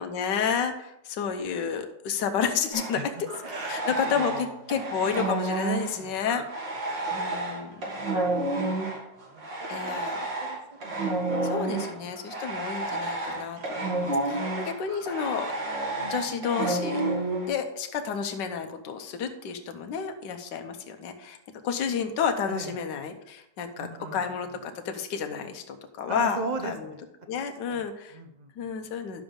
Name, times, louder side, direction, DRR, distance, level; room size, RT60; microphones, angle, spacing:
voice 1, 0.0-3.3 3.7-6.4 7.1-7.9 9.7-10.2 11.4-15.5 16.0-17.0 17.5-21.4 21.6-26.9 27.3-28.2 28.6-29.2, left 6 dB, 75° left, 6 dB, 1.5 m, -31 dB
sound 1, 2.7-4.4 4.7-17.5, right 2 dB, 90° right, 2.7 m, -30 dB
voice 2, 3.4-4.5 5.9-6.2 8.6-9.0 9.3-10.0 10.4-11.3 11.7-11.8 16.0-16.2 22.5-22.8 23.8-24.2 26.1-27.0 27.3-27.8 28.1-28.5, right 3 dB, 60° right, 5 dB, 0.4 m, -39 dB
11.0 x 7.0 x 3.7 m, 0.79 s
omnidirectional pair, 1.9 m